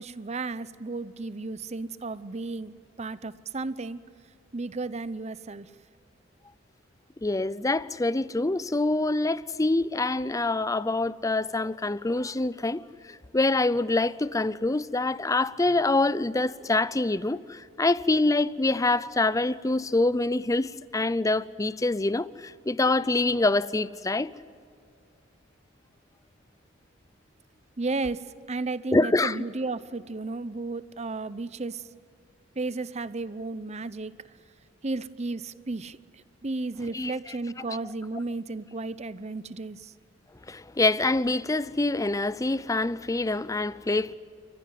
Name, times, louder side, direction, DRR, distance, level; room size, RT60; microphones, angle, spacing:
voice 1, 0.0-4.0 4.5-5.7 27.8-31.8 32.6-34.4 34.8-36.0 36.4-39.9, right 3 dB, 35° right, 0.7 m, -33 dB
voice 2, 7.2-24.3 28.9-29.4 36.9-37.1 40.5-44.2, left 2 dB, 15° left, 0.5 m, -25 dB
29.5 x 15.5 x 9.4 m
head